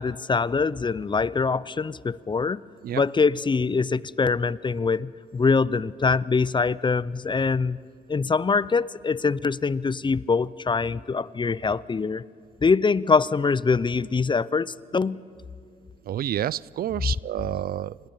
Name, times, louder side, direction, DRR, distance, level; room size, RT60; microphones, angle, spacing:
voice 1, 0.0-2.6 2.9-7.8 8.1-12.2 12.6-15.2 17.0-17.1, left 4 dB, 25° left, 21 dB, 0.6 m, -24 dB
voice 2, 16.1-18.1, right 11 dB, 60° right, 23 dB, 0.5 m, -29 dB
26.0 x 20.0 x 7.4 m, 2.5 s
supercardioid pair, 65°, 17 cm